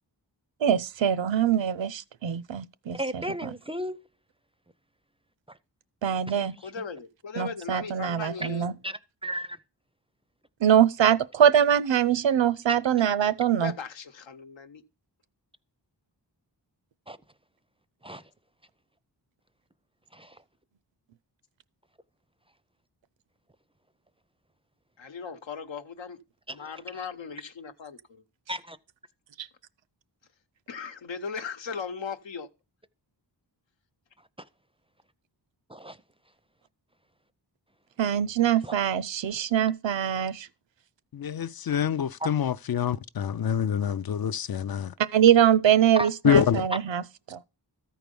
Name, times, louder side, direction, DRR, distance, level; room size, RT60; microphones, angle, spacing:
voice 1, 0.6-3.5 6.0-6.5 7.4-8.7 10.6-13.7 29.4-29.5 38.0-40.5 45.0-47.0 47.3-47.4, right 9 dB, 80° right, 0.6 m, -23 dB
voice 2, 2.9-4.0 5.5-5.6 6.3-6.8 8.4-8.5 8.8-9.6 12.7-12.8 17.1-17.2 18.0-18.2 20.1-20.4 26.5-26.7 26.9-27.0 28.5-28.8 34.4-34.5 35.7-36.0 38.6-38.7 42.2-42.3 46.0-46.1, right 1 dB, 15° right, 0.4 m, -35 dB
voice 3, 6.6-8.7 13.6-14.8 25.0-26.2 26.5-28.2 30.7-32.5, left 5 dB, 85° left, 1.0 m, -38 dB
voice 4, 41.1-44.9 46.2-46.7, left 8 dB, 55° left, 0.5 m, -26 dB
13.5 x 4.7 x 5.3 m
wide cardioid pair, 85°, 44 cm